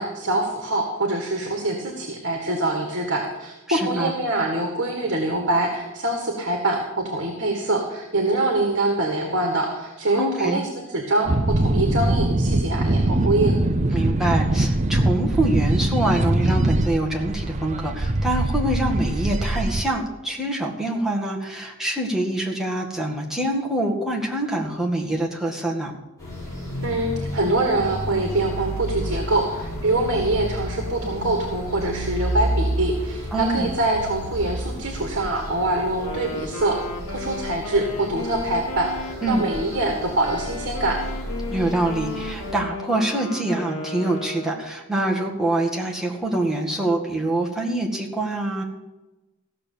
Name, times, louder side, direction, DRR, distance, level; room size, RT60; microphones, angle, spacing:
voice 1, 0.0-13.6 26.8-36.8 37.1-41.0, right 2 dB, 55° right, 2 dB, 1.9 m, -24 dB
voice 2, 3.7-4.1 10.1-10.6 13.9-25.9 33.3-33.7 39.2-39.5 41.5-48.6, right 1 dB, ahead, -2 dB, 2.0 m, -25 dB
sound 1, 11.3-19.8, right 1 dB, 30° right, 0.6 m, -22 dB
sound 2, 26.2-42.5, right 1 dB, 15° left, 4.7 m, -31 dB
Wind instrument woodwind instrument, 35.9-44.8, left 3 dB, 80° left, 1.8 m, -35 dB
15.5 x 6.7 x 8.5 m, 1.1 s
head